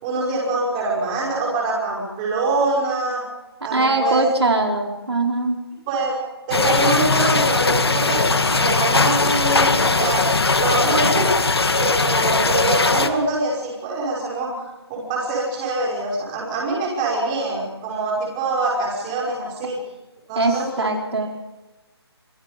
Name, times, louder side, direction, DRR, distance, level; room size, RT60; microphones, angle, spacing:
voice 1, 0.0-3.2 3.6-4.2 5.9-6.2 6.5-10.2 10.6-11.3 11.8-14.5 14.9-19.8 20.3-20.9, right 2 dB, 15° right, -3 dB, 5.9 m, -24 dB
voice 2, 3.7-5.6 20.4-21.3, right 2 dB, 75° right, 2 dB, 4.7 m, -21 dB
sound 1, 6.5-13.1, left 3 dB, 65° left, 2.1 m, -19 dB
27.0 x 23.5 x 5.3 m, 1.1 s
figure-of-eight pair, 170°, 14 cm